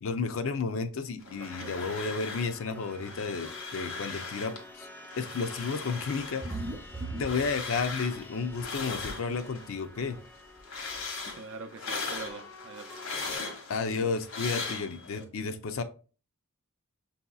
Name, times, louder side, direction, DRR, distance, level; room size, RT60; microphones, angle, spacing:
voice 1, 0.0-4.9 5.2-6.7 7.1-10.2 13.7-15.8, left 4 dB, 65° left, 0.5 m, -32 dB
sound 1, 1.2-2.6 2.8-4.6 5.0-9.7 10.1-15.2, left 4 dB, 85° left, 1.3 m, -39 dB
voice 2, 1.3-1.9 6.3-6.4 11.3-13.0, right 4 dB, 60° right, 0.5 m, -44 dB
sound 2, 1.4-13.4, left 1 dB, 10° left, 0.3 m, -50 dB
sound 3, 6.4-8.2 8.5-9.1 10.1-10.2 10.6-10.7 10.9-11.0, right 2 dB, 20° right, 0.6 m, -38 dB
6.1 x 2.8 x 2.3 m
head